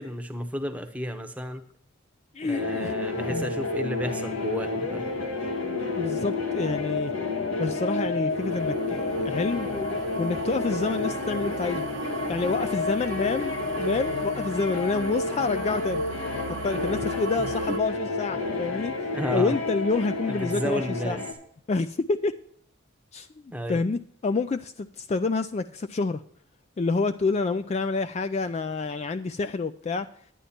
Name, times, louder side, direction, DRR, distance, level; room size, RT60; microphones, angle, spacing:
voice 1, 0.0-1.6 2.4-5.0 17.4-17.5 19.1-19.6 20.3-21.2 23.5-23.8, equal, 5° right, 6 dB, 0.8 m, -32 dB
voice 2, 2.3-2.9 3.3-3.5 6.0-7.1 7.6-9.7 10.2-11.9 12.3-16.0 16.6-18.9 19.3-21.2 21.7-22.4 23.1-23.3 23.7-26.2 26.8-30.1, left 3 dB, 30° left, 10 dB, 0.3 m, -28 dB
sound 1, 2.5-21.3, left 3 dB, 80° left, 2.2 m, -30 dB
sound 2, 8.4-17.8, right 5 dB, 60° right, 0.5 m, -39 dB
10.5 x 10.0 x 4.3 m, 0.64 s
head